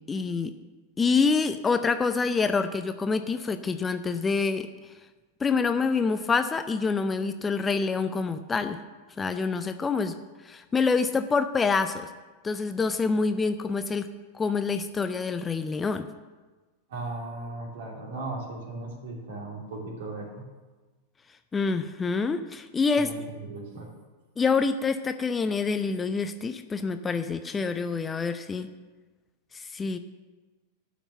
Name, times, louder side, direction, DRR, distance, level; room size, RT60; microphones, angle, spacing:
voice 1, 0.1-0.5 1.0-4.7 5.4-8.8 9.2-10.1 10.4-12.1 12.4-14.1 14.3-16.1 21.5-23.1 24.4-28.7 29.5-30.0, left 4 dB, 15° left, 9 dB, 0.5 m, -26 dB
voice 2, 16.9-20.4 23.0-23.9, right 2 dB, 55° right, 0 dB, 2.8 m, -37 dB
11.5 x 6.0 x 7.1 m, 1.3 s
figure-of-eight pair, 90°, 0 cm